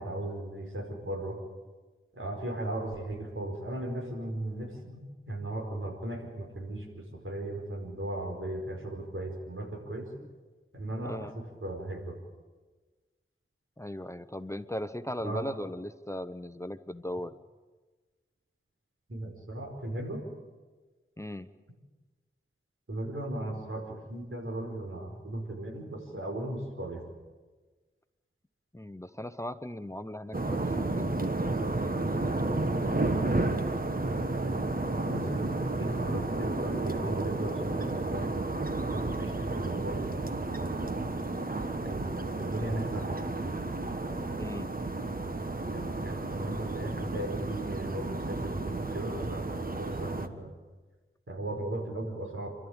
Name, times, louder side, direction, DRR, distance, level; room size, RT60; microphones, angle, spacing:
voice 1, 0.0-1.4 2.1-10.1 10.7-12.1 15.2-15.4 19.1-20.2 22.9-27.0 32.8-33.6 34.4-38.5 38.8-40.2 40.6-41.1 41.8-43.2 45.7-50.5 51.3-52.5, right 1 dB, 75° right, 1 dB, 5.1 m, -37 dB
voice 2, 11.0-11.4 13.8-17.3 21.2-21.5 28.7-31.1 44.4-44.7, left 1 dB, 15° left, 11 dB, 0.8 m, -38 dB
sound 1, 30.3-50.3, right 2 dB, 45° right, 1.4 m, -32 dB
29.0 x 12.5 x 8.8 m, 1.3 s
wide cardioid pair, 50°, 21 cm